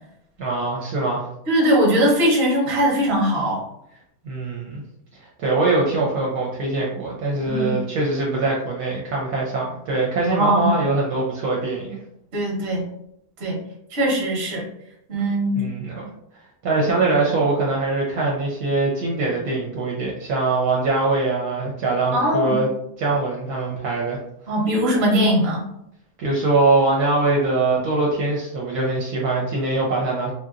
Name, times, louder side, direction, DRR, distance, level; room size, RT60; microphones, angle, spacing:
voice 1, 0.4-1.3 4.2-4.8 5.4-12.0 15.5-16.1 16.6-22.7 23.0-24.2 26.2-30.3, right 3 dB, 70° right, -3 dB, 1.1 m, -22 dB
voice 2, 1.5-3.6 7.5-7.7 10.2-10.7 12.3-12.8 13.4-13.6 13.9-14.6 15.1-15.5 22.1-22.6 24.5-25.6, equal, 45° right, -2 dB, 1.0 m, -20 dB
2.8 x 2.8 x 2.4 m, 0.78 s
omnidirectional pair, 1.9 m